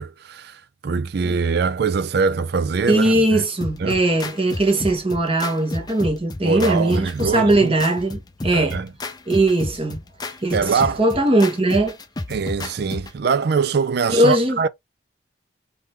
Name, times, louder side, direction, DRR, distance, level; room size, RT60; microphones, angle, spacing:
voice 1, 0.0-3.4 3.8-4.0 6.4-7.7 8.5-8.9 10.5-11.0 12.3-14.7, right 5 dB, 55° right, 0.4 m, -23 dB
voice 2, 2.9-8.8 9.3-10.0 10.4-12.0 14.1-14.6, right 1 dB, 30° right, 1.2 m, -20 dB
sound 1, 3.6-13.2, left 2 dB, 20° left, 0.5 m, -32 dB
3.7 x 3.2 x 3.2 m
head